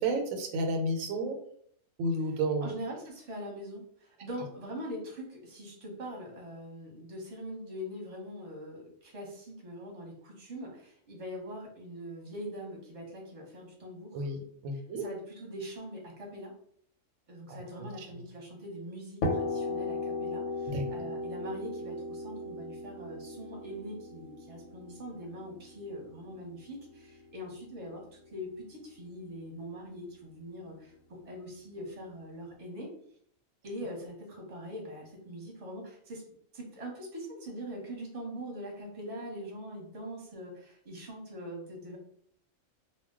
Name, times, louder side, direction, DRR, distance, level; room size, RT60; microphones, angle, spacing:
voice 1, 0.0-1.4 2.0-2.7 14.1-14.4 14.6-15.0 17.5-18.1 20.7-20.8, right 2 dB, 90° right, 4 dB, 1.0 m, -31 dB
voice 2, 2.6-14.3 14.7-16.5 17.3-28.0 28.3-32.9 33.6-36.2 36.5-42.0, equal, 30° right, 0 dB, 0.8 m, -42 dB
sound 1, 19.2-26.9, left 2 dB, 90° left, 1.0 m, -36 dB
2.2 x 2.1 x 3.6 m, 0.63 s
omnidirectional pair, 1.3 m